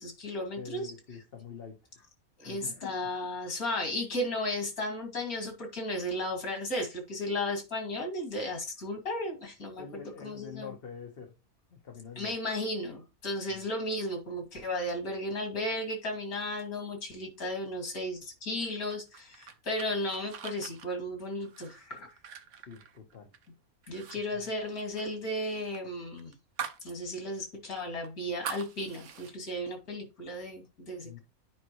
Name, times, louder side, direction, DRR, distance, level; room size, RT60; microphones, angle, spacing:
voice 1, 0.0-0.9 2.4-9.8 10.2-10.7 12.2-22.1 23.9-26.3 26.8-31.2, left 1 dB, 90° left, 2 dB, 2.9 m, -34 dB
voice 2, 0.6-1.8 2.4-3.1 9.8-11.3 11.7-12.3 22.5-23.3 24.3-24.4 31.0-31.2, left 6 dB, 45° left, 2 dB, 1.4 m, -45 dB
sound 1, 18.9-23.5 23.8-24.2 24.4-26.9 27.2-27.3 27.8-29.3, right 8 dB, 60° right, 1.1 m, -43 dB
9.4 x 5.2 x 3.1 m, 0.27 s
omnidirectional pair, 1.5 m